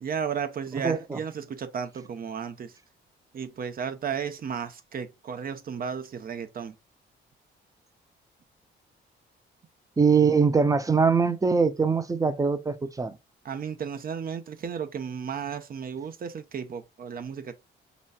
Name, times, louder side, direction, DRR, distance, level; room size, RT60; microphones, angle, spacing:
voice 1, 0.0-2.8 3.3-6.7 13.4-17.5, right 7 dB, 45° right, 0.9 m, -34 dB
voice 2, 0.8-1.2 10.0-13.2, right 5 dB, 15° right, 0.6 m, -22 dB
5.5 x 3.1 x 2.4 m
cardioid pair, 90°, 20 cm